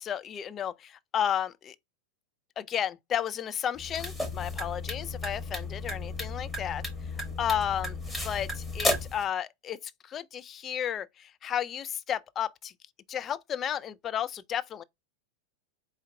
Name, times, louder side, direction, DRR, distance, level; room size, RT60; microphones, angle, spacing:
voice 1, 0.0-1.8 2.6-6.8 7.4-8.0 8.2-12.7 13.1-14.8, left 9 dB, 25° left, 0.3 m, -33 dB
sound 1, 3.8-9.2, left 2 dB, 5° left, 1.1 m, -33 dB
4.5 x 2.2 x 3.5 m
figure-of-eight pair, 90°, 0 cm